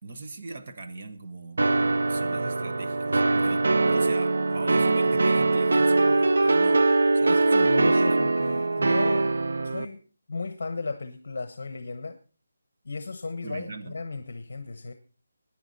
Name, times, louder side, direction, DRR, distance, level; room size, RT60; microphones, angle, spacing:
voice 1, 0.0-6.9 7.1-7.9 13.4-14.0, right 3 dB, 35° right, 7 dB, 1.2 m, -40 dB
sound 1, 1.6-9.8, right 3 dB, 70° right, 0.7 m, -22 dB
voice 2, 7.3-9.3 9.6-10.0 10.3-12.2 12.8-14.9, left 3 dB, 55° left, 10 dB, 1.0 m, -35 dB
18.0 x 10.0 x 4.1 m, 0.37 s
hypercardioid pair, 175°, 0 cm